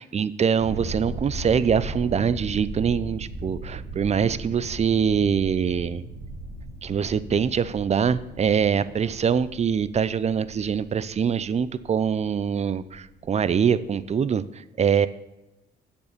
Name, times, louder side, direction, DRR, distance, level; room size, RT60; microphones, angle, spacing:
voice 1, 0.0-6.0 6.8-15.1, right 7 dB, 35° right, 16 dB, 0.5 m, -24 dB
sound 1, 0.6-14.2, right 2 dB, 85° right, 2.3 m, -37 dB
7.9 x 7.0 x 6.7 m, 0.99 s
cardioid pair, 90°, 20 cm